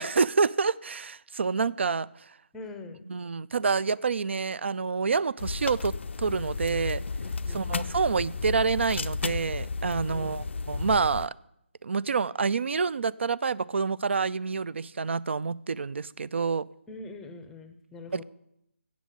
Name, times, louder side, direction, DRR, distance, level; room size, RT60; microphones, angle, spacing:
voice 1, 0.0-2.1 3.1-7.0 7.5-11.3 11.8-16.7 18.1-18.2, right 5 dB, 70° right, 0.4 m, -27 dB
voice 2, 2.5-3.0 7.2-7.9 10.1-10.4 16.9-18.2, left 3 dB, 5° left, 0.6 m, -43 dB
sound 1, 5.4-11.3, left 4 dB, 70° left, 0.4 m, -33 dB
8.2 x 7.3 x 7.5 m
figure-of-eight pair, 160°, 7 cm